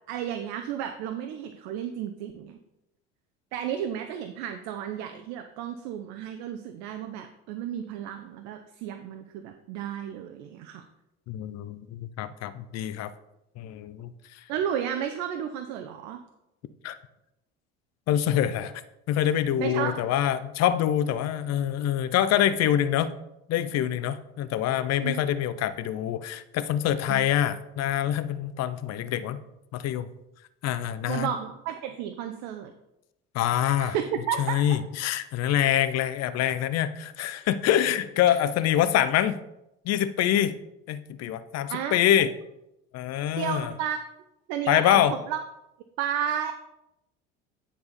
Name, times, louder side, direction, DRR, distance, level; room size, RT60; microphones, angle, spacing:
voice 1, 0.1-2.6 3.5-10.8 14.5-16.2 19.6-20.2 25.0-25.2 27.1-27.3 31.1-32.7 33.8-34.8 41.7-42.0 43.4-44.0 44.5-45.4 46.0-46.5, right 9 dB, 70° right, 7 dB, 0.8 m, -32 dB
voice 2, 11.3-13.1 13.6-14.1 16.8-17.0 18.1-18.7 19.1-23.1 23.5-29.4 29.7-30.1 30.6-31.3 33.3-34.0 34.4-39.3 39.8-40.5 40.9-42.3 42.9-43.7 44.7-45.1, left 11 dB, 55° left, 14 dB, 0.7 m, -25 dB
9.5 x 4.3 x 5.2 m, 0.89 s
hypercardioid pair, 70°, 31 cm